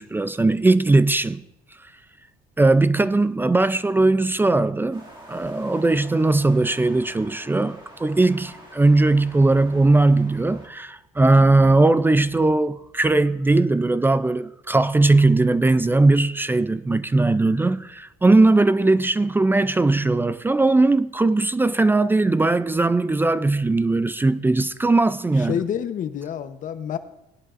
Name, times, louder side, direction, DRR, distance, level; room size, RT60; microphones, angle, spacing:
voice 1, 0.0-1.4 2.6-25.6, right 2 dB, 10° right, 0.3 m, -19 dB
sound 1, 4.9-10.7, right 1 dB, 30° right, 2.2 m, -46 dB
voice 2, 25.4-27.0, left 9 dB, 50° left, 0.9 m, -28 dB
18.0 x 11.0 x 2.5 m
cardioid pair, 110°, 17 cm